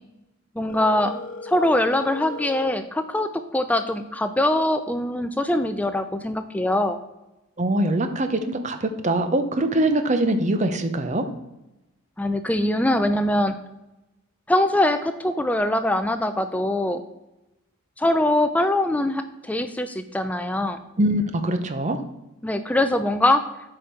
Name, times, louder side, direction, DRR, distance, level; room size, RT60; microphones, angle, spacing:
voice 1, 0.6-1.1 1.4-7.0 12.2-13.6 14.5-17.0 18.0-20.8 22.4-23.4, left 1 dB, 5° left, 9 dB, 0.3 m, -22 dB
Telephone, 0.7-2.7, left 3 dB, 75° left, 1.6 m, -37 dB
voice 2, 7.6-11.2 21.0-22.0, right 1 dB, 35° right, 8 dB, 0.7 m, -23 dB
8.2 x 5.0 x 4.5 m, 0.95 s
head